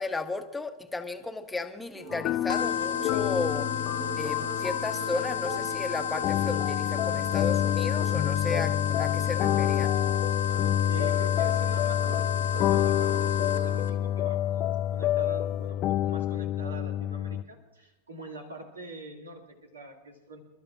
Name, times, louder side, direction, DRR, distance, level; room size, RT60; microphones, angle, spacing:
voice 1, 0.0-3.7 4.1-9.9, left 3 dB, 10° left, 7 dB, 1.1 m, -34 dB
sound 1, 1.9-13.8, right 2 dB, 50° right, 4.6 m, -43 dB
sound 2, 2.1-17.4, left 12 dB, 35° left, 0.4 m, -28 dB
sound 3, 2.5-13.9, left 7 dB, 65° left, 1.2 m, -33 dB
voice 2, 10.5-20.4, right 2 dB, 75° right, 3 dB, 2.4 m, -44 dB
29.0 x 12.5 x 2.5 m, 0.97 s
figure-of-eight pair, 90°, 0 cm